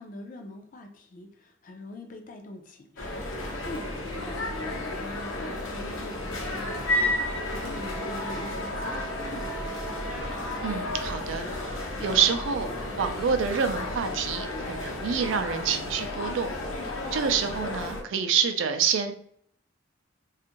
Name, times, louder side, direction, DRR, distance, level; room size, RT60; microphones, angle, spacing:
voice 1, 0.0-7.1 7.5-9.7, left 1 dB, 45° left, 5 dB, 0.4 m, -44 dB
sound 1, 3.0-18.0, left 1 dB, 85° left, 0.8 m, -32 dB
Wind instrument woodwind instrument, 6.6-11.1, right 4 dB, 10° right, 0.6 m, -42 dB
voice 2, 10.6-11.7 12.0-12.7 13.0-16.5 17.1-19.1, right 6 dB, 70° right, 7 dB, 0.4 m, -27 dB
2.5 x 2.4 x 2.9 m, 0.65 s
head